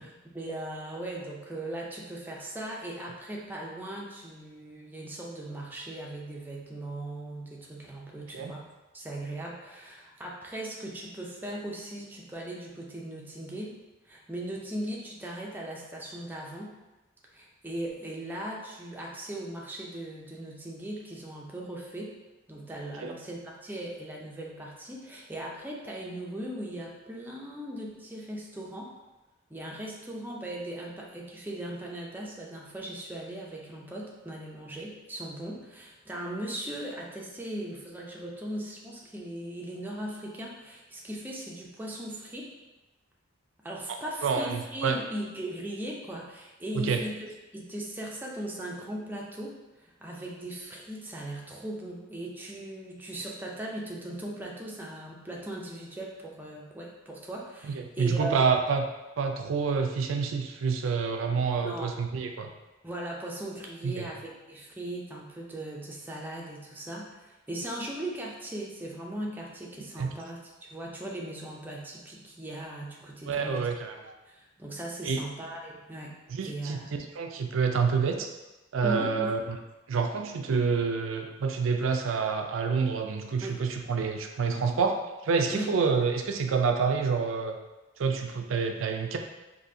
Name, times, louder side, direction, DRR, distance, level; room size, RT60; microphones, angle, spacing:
voice 1, 0.0-8.7 8.9-13.7 14.0-16.7 17.3-22.1 22.5-28.9 29.5-42.5 43.6-58.6 61.6-61.9 62.8-73.7 74.3-76.2 76.4-76.9 78.8-79.4 83.4-83.6 85.5-85.8, right 1 dB, 10° right, -3 dB, 0.5 m, -38 dB
voice 2, 44.2-45.0 46.7-47.0 57.7-58.8 59.2-62.5 63.8-64.0 70.0-70.1 73.3-74.1 75.0-75.2 76.3-76.8 77.2-78.3 78.7-79.4 79.9-87.6 88.0-89.2, right 5 dB, 70° right, 4 dB, 0.4 m, -28 dB
4.1 x 2.7 x 2.7 m, 1.1 s
head